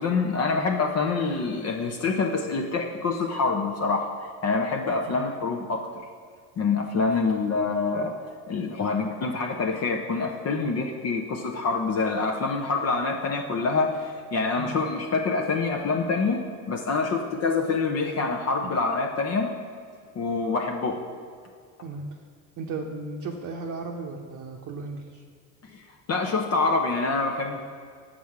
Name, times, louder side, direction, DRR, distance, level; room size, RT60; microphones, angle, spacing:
voice 1, 0.0-4.1 4.4-5.9 6.6-8.1 8.5-16.4 16.7-19.5 20.2-21.0 25.7-25.8 26.1-27.6, left 4 dB, 35° left, 2 dB, 0.7 m, -26 dB
voice 2, 22.6-25.2, right 3 dB, 40° right, 1 dB, 0.9 m, -35 dB
7.3 x 6.2 x 4.7 m, 2.1 s
supercardioid pair, 80°, 42 cm